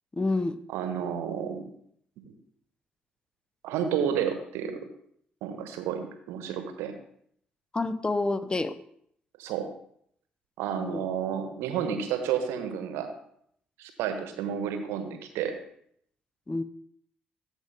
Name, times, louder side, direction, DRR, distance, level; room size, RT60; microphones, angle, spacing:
voice 1, 0.1-0.6 7.7-8.8 10.8-11.1 16.5-16.6, left 2 dB, 20° left, 13 dB, 0.6 m, -28 dB
voice 2, 0.7-1.7 2.2-2.3 3.6-4.8 5.4-6.9 9.4-9.7 10.6-13.1 13.8-15.5, right 8 dB, 65° right, 8 dB, 1.0 m, -31 dB
13.5 x 4.9 x 3.4 m, 0.68 s
figure-of-eight pair, 40°, 5 cm